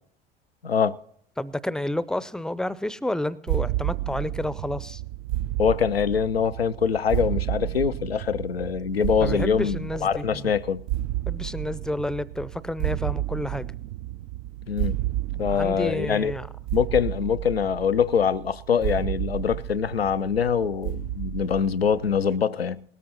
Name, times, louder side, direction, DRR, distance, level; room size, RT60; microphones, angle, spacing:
voice 1, 0.6-1.0 5.6-10.9 14.7-15.0 15.4-16.3 16.7-22.8, left 7 dB, 90° left, 0.5 m, -24 dB
voice 2, 1.4-5.0 9.2-10.5 11.3-13.7 15.4-16.5, left 1 dB, ahead, 0.5 m, -30 dB
sound 1, 3.5-22.4, right 14 dB, 55° right, 0.4 m, -31 dB
18.5 x 13.5 x 2.9 m
figure-of-eight pair, 65°, 29 cm